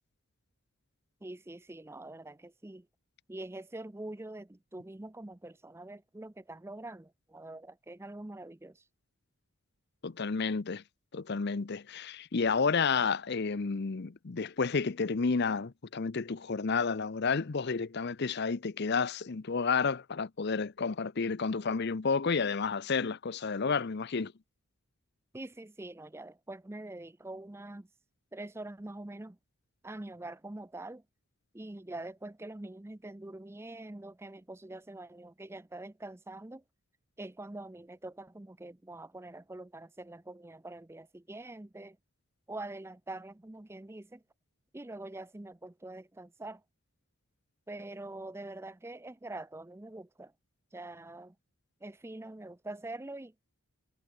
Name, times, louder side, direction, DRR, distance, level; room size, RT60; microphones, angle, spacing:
voice 1, 1.2-2.9 3.3-8.8 25.3-27.9 28.3-29.4 29.8-31.0 31.5-36.6 37.2-42.0 42.5-44.2 44.7-46.6 47.7-50.3 50.7-51.3 51.8-53.3, right 2 dB, 10° right, 0.4 m, -44 dB
voice 2, 10.0-10.8 11.1-24.3, left 5 dB, 50° left, 0.6 m, -31 dB
head